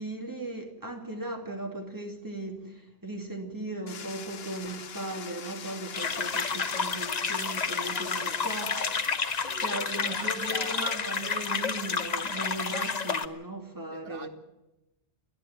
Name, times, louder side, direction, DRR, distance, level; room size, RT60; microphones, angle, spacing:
voice 1, 0.0-8.7 9.6-14.3, right 2 dB, 15° right, 2.6 m, -37 dB
sound 1, 3.9-9.0, left 7 dB, 60° left, 1.1 m, -42 dB
sound 2, 5.9-13.3, left 5 dB, 40° left, 0.9 m, -30 dB
voice 2, 7.8-11.2 13.9-14.3, right 3 dB, 55° right, 1.8 m, -45 dB
28.5 x 10.5 x 9.3 m
omnidirectional pair, 1.2 m